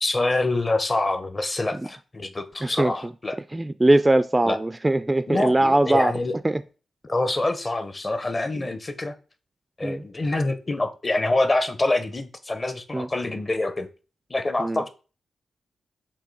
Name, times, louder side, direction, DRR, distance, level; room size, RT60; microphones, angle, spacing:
voice 1, 0.0-3.4 4.4-4.6 5.3-6.4 7.0-9.1 9.8-13.9 14.3-14.9, left 2 dB, 30° left, 0.8 m, -26 dB
voice 2, 2.6-2.9 3.5-6.1 6.4-6.6 8.6-8.7 9.8-10.0 12.9-13.1 14.6-14.8, right 2 dB, 15° right, 0.3 m, -21 dB
7.2 x 2.7 x 5.3 m
cardioid pair, 100°, 0 cm